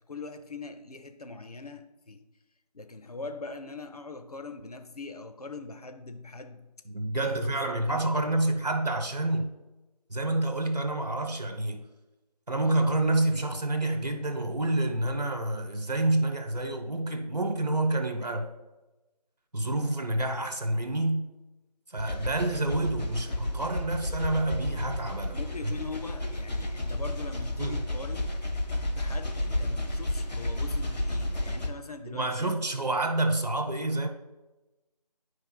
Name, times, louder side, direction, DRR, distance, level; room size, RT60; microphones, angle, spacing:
voice 1, 0.1-2.2 2.7-6.7 7.2-8.5 25.3-28.4 28.9-32.6, left 3 dB, 65° left, 0.7 m, -42 dB
voice 2, 6.8-9.5 10.1-11.8 12.5-18.5 19.5-21.2 21.9-25.4 25.6-25.7 27.6-27.8 32.1-34.1, right 2 dB, 70° right, 1.4 m, -28 dB
sound 1, 22.0-31.7, left 1 dB, 85° left, 1.0 m, -32 dB
12.0 x 4.8 x 2.2 m
figure-of-eight pair, 165°, 21 cm